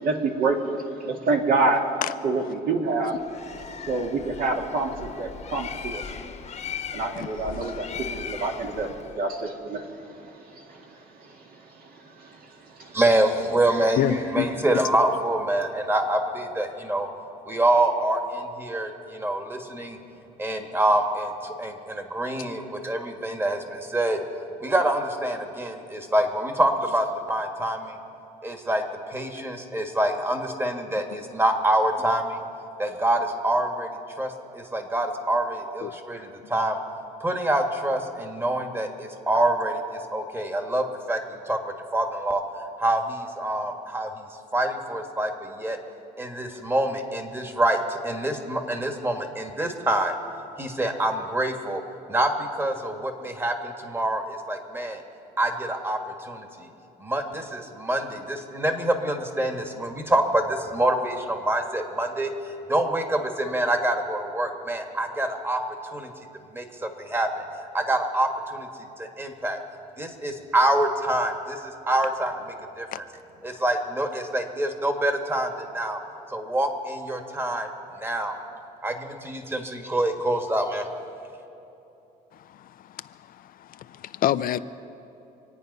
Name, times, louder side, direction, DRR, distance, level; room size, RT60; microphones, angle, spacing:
voice 1, 0.0-1.8 2.2-3.2 3.9-6.0 6.9-10.2 10.5-11.4 12.2-12.4 12.8-13.0, right 3 dB, 60° right, 2 dB, 2.1 m, -27 dB
Bird, 3.2-9.2, left 7 dB, 40° left, 1.0 m, -38 dB
voice 2, 12.9-17.1 17.4-20.0 20.4-24.2 24.6-28.0 28.4-28.8 29.1-32.4 32.8-36.8 37.2-41.6 41.9-42.4 42.8-44.2 44.5-45.8 46.2-50.1 50.6-51.8 52.1-55.0 55.4-56.7 57.0-62.3 62.7-66.1 66.5-67.4 67.7-68.7 69.0-69.6 70.0-71.6 71.9-73.1 73.4-76.0 76.3-77.7 78.0-78.4 78.8-80.9, right 1 dB, 15° right, 4 dB, 1.6 m, -26 dB
voice 3, 14.0-14.5 35.8-36.0 72.9-73.0 83.7-84.6, left 12 dB, 60° left, 13 dB, 0.5 m, -26 dB
26.0 x 9.1 x 5.5 m, 3.0 s
cardioid pair, 110°, 17 cm